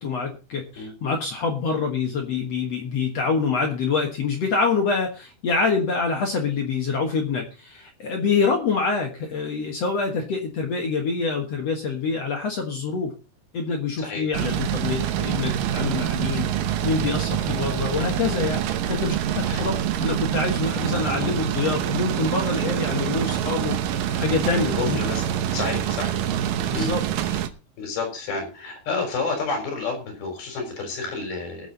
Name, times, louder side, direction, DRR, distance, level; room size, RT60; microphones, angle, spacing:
voice 1, 0.0-13.1 13.5-16.5 16.8-18.6 18.9-23.8 24.1-25.0 26.6-27.0, left 4 dB, 55° left, 3 dB, 2.1 m, -26 dB
sound 1, 14.3-27.5, right 10 dB, 70° right, 2.4 m, -26 dB
voice 2, 24.6-25.2 25.5-26.1 26.7-26.9 27.8-31.7, left 4 dB, 80° left, 4 dB, 5.7 m, -30 dB
20.5 x 7.2 x 4.0 m, 0.34 s
omnidirectional pair, 4.3 m